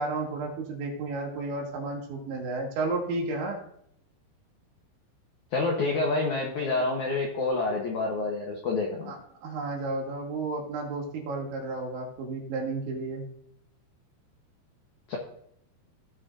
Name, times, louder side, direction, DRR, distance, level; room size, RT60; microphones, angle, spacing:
voice 1, 0.0-3.6 9.1-13.3, right 3 dB, 80° right, 0 dB, 4.1 m, -32 dB
voice 2, 5.5-9.1 15.1-15.2, left 3 dB, 85° left, 0 dB, 1.7 m, -28 dB
17.0 x 6.2 x 2.7 m, 0.71 s
omnidirectional pair, 5.3 m